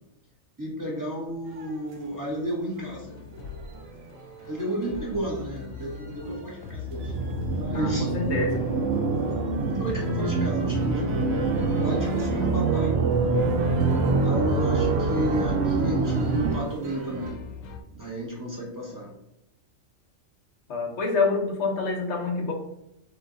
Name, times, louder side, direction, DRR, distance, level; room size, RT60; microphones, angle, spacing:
voice 1, 0.6-3.2 4.4-7.1 7.5-8.1 8.9-9.2 9.8-11.3 11.7-12.9 13.9-17.4 17.9-19.1, equal, 15° right, -4 dB, 1.2 m, -32 dB
sound 1, 1.4-17.3, right 2 dB, 90° right, 1.2 m, -43 dB
sound 2, 2.9-17.8, left 5 dB, 80° left, 1.0 m, -41 dB
sound 3, 6.8-16.6, right 4 dB, 60° right, 0.8 m, -25 dB
voice 2, 7.7-8.6 20.7-22.5, left 3 dB, 60° left, 2 dB, 1.2 m, -27 dB
4.2 x 3.1 x 3.8 m, 0.85 s
omnidirectional pair, 1.4 m